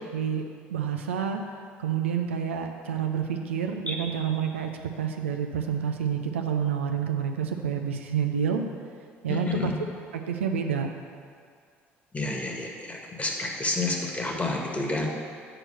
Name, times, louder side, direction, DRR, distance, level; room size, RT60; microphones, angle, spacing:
voice 1, 0.1-0.4 0.7-1.4 1.8-4.7 5.0-8.6 9.2-9.7 10.1-10.9, right 7 dB, 85° right, 4 dB, 0.5 m, -28 dB
voice 2, 9.3-9.7 12.1-12.7 13.2-15.1, left 2 dB, 20° left, 0 dB, 1.6 m, -29 dB
7.7 x 4.6 x 6.7 m, 2.1 s
hypercardioid pair, 60°, 7 cm